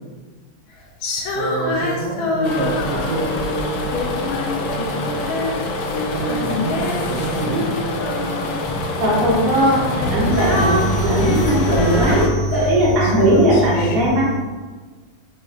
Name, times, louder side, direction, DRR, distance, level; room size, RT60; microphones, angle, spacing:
Female singing, 1.0-3.4 3.9-5.6 5.9-8.7 9.5-14.1, left 2 dB, 85° left, 1.4 m, -26 dB
voice 1, 1.3-4.0 4.6-5.3 5.9-7.7 9.6-10.0, right 3 dB, 75° right, -2 dB, 0.9 m, -28 dB
big lorry engine, 2.4-12.3, left 1 dB, 70° left, 0.9 m, -25 dB
voice 2, 9.0-14.4, equal, 40° right, -4 dB, 0.9 m, -17 dB
4.8 x 3.0 x 2.8 m, 1.3 s
omnidirectional pair, 2.1 m